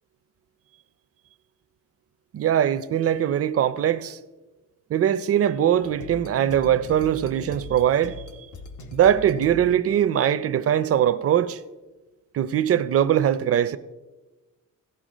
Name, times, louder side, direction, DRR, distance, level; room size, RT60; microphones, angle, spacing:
voice 1, 2.3-4.2 4.9-8.1 8.9-11.6 12.3-13.8, right 10 dB, 45° right, 0.5 m, -21 dB
sound 1, 5.8-10.0, left 2 dB, 65° left, 1.1 m, -40 dB
16.0 x 5.8 x 5.0 m
wide cardioid pair, 135°, 32 cm